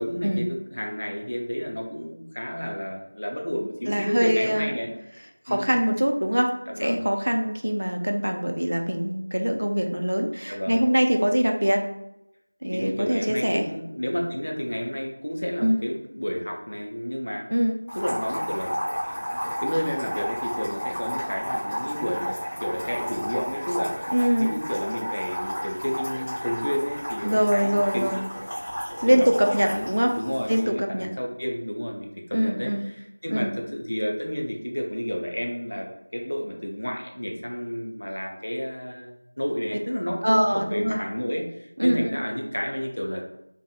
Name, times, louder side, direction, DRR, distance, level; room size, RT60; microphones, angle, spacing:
voice 1, 0.0-4.9 5.5-5.7 6.7-7.0 10.5-10.9 12.6-17.5 17.9-18.8 19.3-24.0 24.4-28.3 29.0-29.3 29.6-43.2, equal, 60° left, 1 dB, 0.5 m, -31 dB
voice 2, 3.9-4.7 5.5-6.5 6.8-11.8 12.6-13.7 15.6-15.8 17.5-17.8 24.1-24.5 27.2-28.2 29.0-30.1 30.5-31.1 32.3-32.8 33.3-33.5 40.2-41.0 41.8-42.2, equal, 60° right, 3 dB, 0.3 m, -23 dB
sound 1, 17.9-30.6, equal, 5° left, 0.6 m, -32 dB
2.5 x 2.4 x 2.3 m, 0.85 s
figure-of-eight pair, 180°, 0 cm